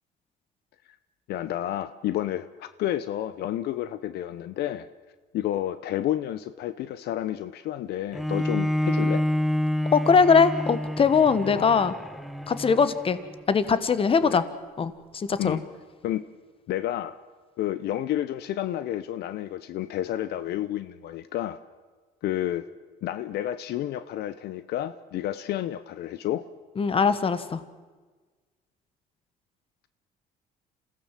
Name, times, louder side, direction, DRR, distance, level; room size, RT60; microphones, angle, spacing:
voice 1, 1.3-4.9 5.3-9.3 11.5-11.7 14.2-14.4 15.4-15.6 16.0-16.3 16.7-17.2 17.6-21.6 22.2-22.6 23.0-26.4, left 12 dB, 75° left, 13 dB, 0.8 m, -30 dB
Bowed string instrument, 8.1-13.4, left 1 dB, ahead, 0.9 m, -28 dB
voice 2, 9.9-11.9 12.5-13.2 13.5-14.4 14.8-15.6 26.8-27.6, left 5 dB, 35° left, 13 dB, 1.4 m, -21 dB
27.0 x 16.0 x 7.4 m, 1.4 s
cardioid pair, 110°, 17 cm